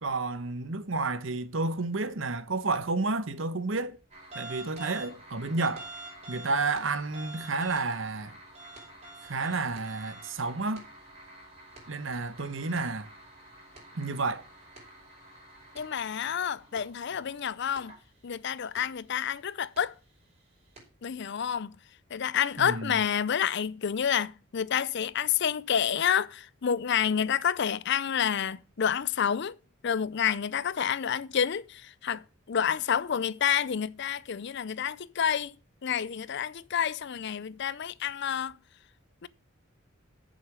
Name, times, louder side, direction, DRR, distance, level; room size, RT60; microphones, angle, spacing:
voice 1, 0.0-4.0 4.3-5.9 6.3-8.3 9.2-10.8 11.9-13.1 13.9-14.5 22.6-23.0, right 3 dB, 70° right, 1.0 m, -31 dB
sound 1, 4.1-17.4 17.8-18.0 18.8-18.9 19.7-19.8 20.8-20.9, right 2 dB, 35° right, 5.2 m, -48 dB
voice 2, 15.7-17.9 18.2-19.9 21.0-21.8 22.1-29.6 29.8-35.6 35.8-38.6 39.2-39.3, left 8 dB, 60° left, 0.5 m, -29 dB
7.9 x 7.1 x 6.2 m
head